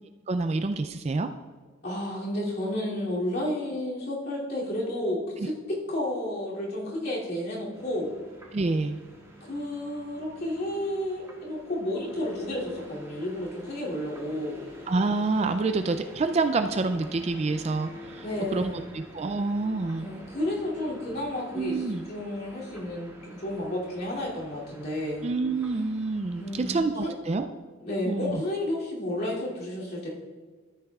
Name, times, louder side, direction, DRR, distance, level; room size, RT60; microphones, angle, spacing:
voice 1, 0.3-1.3 8.5-9.0 14.9-18.2 18.5-20.1 21.5-22.1 25.2-27.5 28.1-28.4, right 3 dB, 30° right, 8 dB, 0.3 m, -27 dB
voice 2, 1.8-8.1 9.5-14.6 18.2-18.8 20.0-25.3 26.4-27.2 27.8-30.1, left 1 dB, 50° left, -6 dB, 2.7 m, -31 dB
sound 1, 7.7-26.8, equal, 15° right, 1.7 m, -48 dB
13.5 x 8.5 x 2.4 m, 1.4 s
head